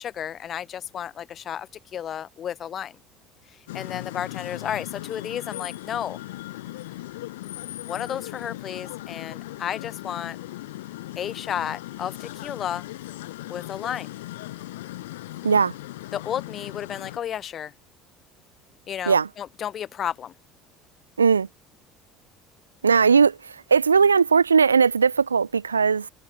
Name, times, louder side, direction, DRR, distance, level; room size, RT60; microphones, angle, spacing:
voice 1, 0.0-3.0 3.5-6.2 7.9-10.4 11.1-12.9 13.5-14.1 16.1-17.7 18.9-20.3, left 9 dB, 40° left, 3.4 m, -32 dB
sound 1, 3.7-17.2, left 16 dB, 70° left, 2.4 m, -38 dB
voice 2, 22.8-26.1, right 5 dB, 85° right, 0.5 m, -19 dB
figure-of-eight pair, 60°, 0 cm